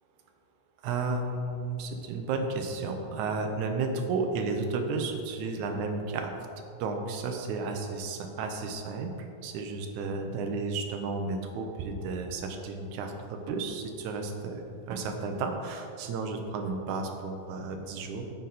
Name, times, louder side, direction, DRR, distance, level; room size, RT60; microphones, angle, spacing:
voice 1, 0.8-6.4 6.7-9.1 9.4-18.3, right 3 dB, 80° right, 5 dB, 2.3 m, -33 dB
9.8 x 7.8 x 4.1 m, 2.6 s
omnidirectional pair, 3.4 m